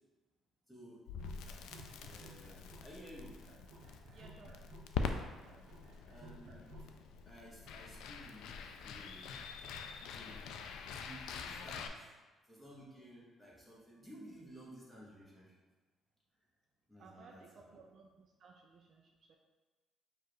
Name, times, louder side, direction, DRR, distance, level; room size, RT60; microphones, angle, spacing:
voice 1, 0.7-1.0 2.1-3.4 6.0-6.7 7.2-8.5 8.8-9.3 10.1-10.5 10.8-12.1 12.5-15.5 16.9-17.8, equal, ahead, -6 dB, 1.1 m, -55 dB
Crackle, 1.1-11.9, left 5 dB, 85° left, 0.3 m, -44 dB
sound 1, 1.1-2.9 3.2-6.9, right 2 dB, 60° right, 0.8 m, -56 dB
voice 2, 4.1-4.6 17.0-19.4, right 4 dB, 45° right, 2 dB, 0.3 m, -59 dB
4.5 x 2.4 x 4.7 m, 1.3 s
cardioid pair, 150°, 0 cm